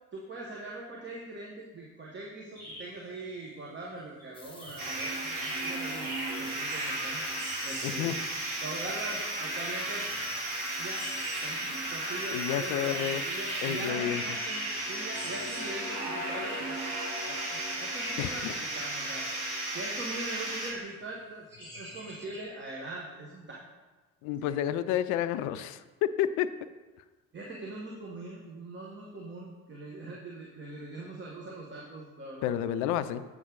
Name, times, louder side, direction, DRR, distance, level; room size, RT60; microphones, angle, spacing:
voice 1, 0.1-6.1 6.4-7.2 7.6-8.1 8.6-10.1 10.8-11.0 11.4-16.8 17.2-19.2 19.7-23.6 24.4-24.5 27.3-32.5, right 2 dB, 25° right, -3 dB, 1.2 m, -42 dB
sound 1, 2.6-3.2 3.5-3.6 4.2-4.3 4.6-8.2 8.9-10.6 10.9-11.7 12.3-15.9 16.2-18.5 19.2-19.3 19.6-19.9 20.5-20.8 21.5-22.5, right 1 dB, 85° right, 2.0 m, -44 dB
sound 2, 4.3-13.9, left 2 dB, 10° left, 1.2 m, -50 dB
sound 3, 4.8-20.7, right 1 dB, 60° right, 2.1 m, -34 dB
voice 2, 7.8-8.2 12.3-13.2 13.6-14.4 18.2-18.5 24.2-26.5 32.4-33.2, left 11 dB, 45° left, 13 dB, 0.5 m, -30 dB
7.7 x 6.0 x 3.9 m, 1.2 s
figure-of-eight pair, 55°, 41 cm